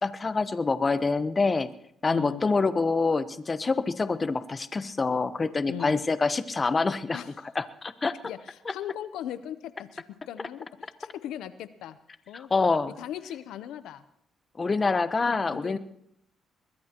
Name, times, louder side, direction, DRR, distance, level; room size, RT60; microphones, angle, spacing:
voice 1, 0.0-1.7 2.0-7.2 7.5-8.1 12.5-13.0 14.6-15.8, left 4 dB, 30° left, 12 dB, 0.9 m, -26 dB
voice 2, 2.1-2.4 5.7-6.0 7.1-7.3 8.2-12.0 12.3-12.5 13.0-14.0 15.3-15.8, left 10 dB, 85° left, 13 dB, 0.7 m, -38 dB
22.5 x 21.0 x 3.0 m, 0.71 s
cardioid pair, 90°, 0 cm